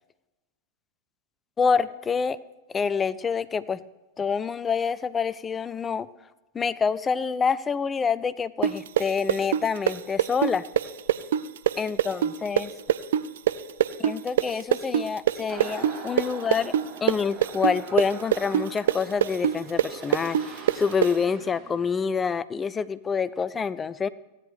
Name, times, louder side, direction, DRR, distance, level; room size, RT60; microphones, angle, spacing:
voice 1, 1.6-2.4 2.7-3.8 4.2-6.1 6.5-10.6 11.8-12.7 14.0-16.7 17.0-24.1, left 5 dB, 20° left, 17 dB, 0.4 m, -27 dB
sound 1, 8.6-16.3 16.5-21.1, right 10 dB, 60° right, 0.4 m, -23 dB
sound 2, 15.5-21.9, right 4 dB, 25° right, 1.9 m, -42 dB
16.0 x 9.9 x 3.3 m, 1.0 s
figure-of-eight pair, 90°, 0 cm